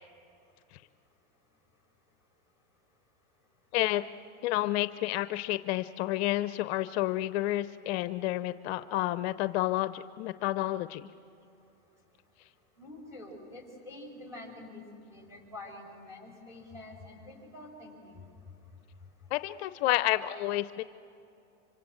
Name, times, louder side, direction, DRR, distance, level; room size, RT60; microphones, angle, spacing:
voice 1, 3.7-4.0 4.4-11.1 19.3-20.8, left 16 dB, 55° left, 13 dB, 0.7 m, -30 dB
voice 2, 12.8-14.8 15.1-18.3, left 2 dB, 10° right, -2 dB, 6.4 m, -47 dB
25.5 x 25.5 x 7.7 m, 2.8 s
supercardioid pair, 125°, 37 cm